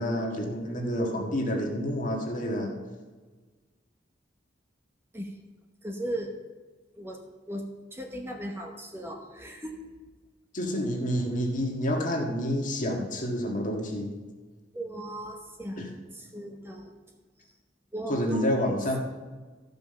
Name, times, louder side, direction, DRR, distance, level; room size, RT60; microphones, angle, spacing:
voice 1, 0.0-2.7 10.5-14.1 15.8-15.9 18.1-19.0, equal, 45° left, 1 dB, 1.7 m, -28 dB
voice 2, 5.8-6.3 7.0-7.2 7.5-7.6 7.9-9.8 14.7-15.8 16.1-16.9 17.9-18.8, right 1 dB, 15° right, 2 dB, 0.9 m, -37 dB
14.0 x 5.4 x 6.6 m, 1.3 s
head